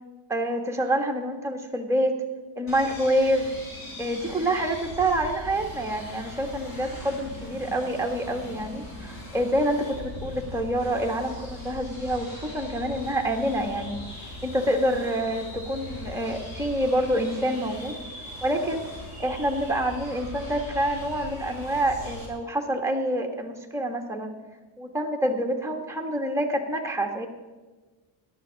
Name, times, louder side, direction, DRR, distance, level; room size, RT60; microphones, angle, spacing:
voice 1, 0.3-2.2 2.6-3.5 4.0-14.0 14.4-18.0 18.4-18.8 19.2-24.3 24.8-27.3, right 1 dB, 5° right, 1 dB, 1.4 m, -27 dB
sound 1, 2.7-22.3, left 1 dB, 45° left, 4.3 m, -40 dB
17.0 x 11.5 x 4.0 m, 1.3 s
cardioid pair, 145°, 48 cm